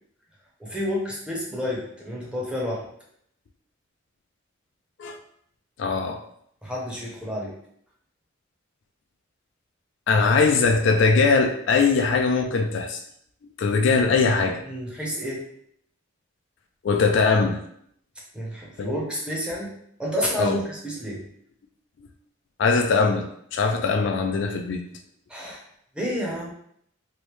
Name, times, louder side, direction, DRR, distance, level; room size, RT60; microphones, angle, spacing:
voice 1, 0.6-2.8 6.6-7.5 14.7-15.4 18.3-21.2 25.3-25.6 25.9-26.5, equal, 5° right, -4 dB, 0.7 m, -30 dB
voice 2, 5.8-6.2 10.1-13.0 13.6-14.6 16.8-17.6 18.8-18.9 20.4-20.6 22.6-24.8, left 4 dB, 60° left, 4 dB, 0.3 m, -21 dB
3.1 x 2.6 x 3.1 m, 0.69 s
head